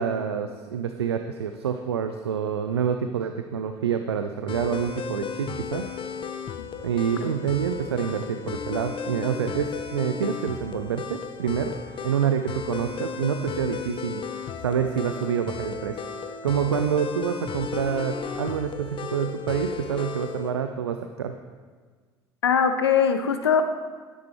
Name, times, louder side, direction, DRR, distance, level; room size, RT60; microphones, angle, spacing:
voice 1, 0.0-5.9 6.8-11.7 12.0-14.2 14.6-16.0 16.4-21.3, right 8 dB, 80° right, 7 dB, 0.4 m, -27 dB
sound 1, 4.5-20.5, left 6 dB, 40° left, 0.8 m, -34 dB
voice 2, 22.4-23.6, left 7 dB, 80° left, 9 dB, 0.6 m, -21 dB
11.5 x 10.5 x 3.2 m, 1.5 s
figure-of-eight pair, 60°, 13 cm